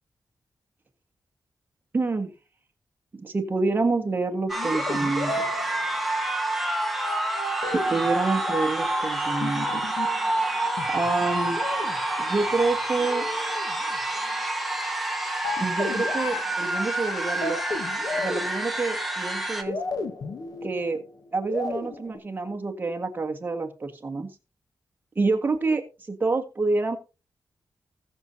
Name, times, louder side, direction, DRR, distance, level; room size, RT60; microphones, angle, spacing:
voice 1, 1.9-2.3 3.1-5.5 7.7-9.8 10.9-11.6 12.2-13.3 15.6-17.6 18.2-19.8 20.6-21.0 21.3-24.3 25.2-27.0, right 3 dB, 30° right, 4 dB, 1.6 m, -27 dB
sound 1, 4.5-6.5 7.6-8.9 9.4-10.3 10.8-14.0 15.4-19.1 19.7-22.2, left 3 dB, 70° left, 1.5 m, -34 dB
sound 2, 4.5-19.6, right 1 dB, ahead, 1.4 m, -28 dB
20.0 x 6.8 x 2.8 m, 0.31 s
wide cardioid pair, 165°, 7 cm